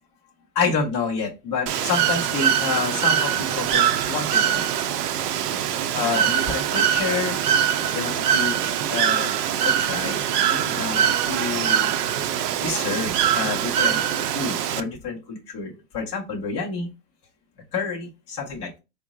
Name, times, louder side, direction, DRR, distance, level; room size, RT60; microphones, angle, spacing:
voice 1, 0.5-4.6 5.9-7.4 7.9-8.6 8.9-9.4 9.6-10.2 10.5-11.9 12.6-14.0 14.3-16.9 17.7-18.8, left 5 dB, 20° left, -4 dB, 0.4 m, -28 dB
Bird / Water, 1.7-14.8, right 9 dB, 70° right, 0.5 m, -23 dB
3.6 x 2.0 x 3.5 m, 0.27 s
supercardioid pair, 150°, 49 cm